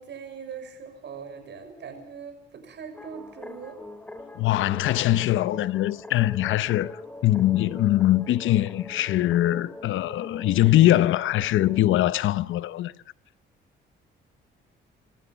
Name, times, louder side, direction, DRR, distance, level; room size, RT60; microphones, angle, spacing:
voice 1, 0.0-3.8, right 6 dB, 60° right, 6.5 m, -41 dB
sound 1, 2.9-11.9, left 2 dB, 5° left, 3.1 m, -43 dB
voice 2, 4.4-12.9, left 14 dB, 80° left, 0.8 m, -22 dB
27.0 x 15.0 x 7.0 m
cardioid pair, 90°, 20 cm